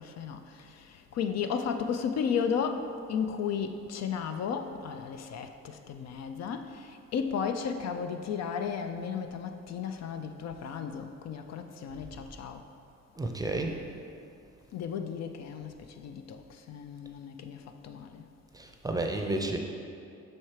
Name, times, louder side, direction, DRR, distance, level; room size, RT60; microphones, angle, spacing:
voice 1, 0.0-12.7 14.7-18.3, left 6 dB, 60° left, 0.4 m, -34 dB
voice 2, 13.2-13.7 18.5-19.6, right 2 dB, 10° right, 0.5 m, -31 dB
5.6 x 4.4 x 4.7 m
cardioid pair, 90°, 30 cm